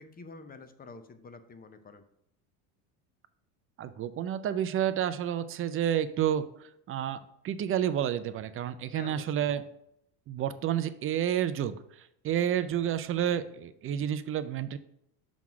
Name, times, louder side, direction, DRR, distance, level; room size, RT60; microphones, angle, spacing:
voice 1, 0.0-2.0 8.9-9.6, left 3 dB, 20° left, 9 dB, 0.7 m, -48 dB
voice 2, 3.8-9.6 10.3-14.8, right 10 dB, 30° right, 12 dB, 0.4 m, -30 dB
6.2 x 3.7 x 5.9 m, 0.76 s
supercardioid pair, 110°, 45 cm